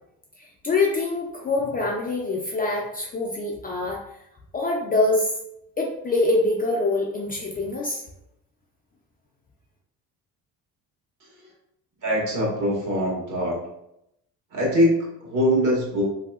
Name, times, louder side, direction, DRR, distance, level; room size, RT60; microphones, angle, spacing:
voice 1, 0.4-4.0 4.5-5.3 5.8-8.0, left 2 dB, 25° left, -2 dB, 0.4 m, -24 dB
voice 2, 12.0-13.6 14.5-16.0, equal, 55° right, -3 dB, 1.4 m, -23 dB
3.2 x 2.7 x 2.3 m, 0.81 s
cardioid pair, 115°, 38 cm